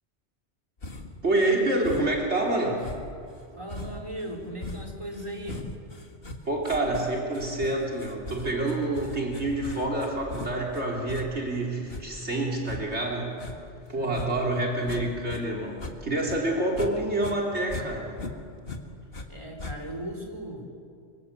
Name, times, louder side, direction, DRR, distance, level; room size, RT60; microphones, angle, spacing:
sound 1, 0.8-1.2 1.8-2.3 2.8-15.4 15.7-16.9 17.2-19.3 19.6-20.1, left 2 dB, 55° left, 2.2 m, -40 dB
voice 1, 1.2-2.8 6.5-13.3 13.9-18.1, right 2 dB, 70° right, -1 dB, 4.0 m, -27 dB
voice 2, 3.6-5.6 13.9-14.4 19.3-20.7, equal, 25° right, 1 dB, 4.6 m, -37 dB
25.5 x 25.0 x 8.3 m, 2.3 s
omnidirectional pair, 1.2 m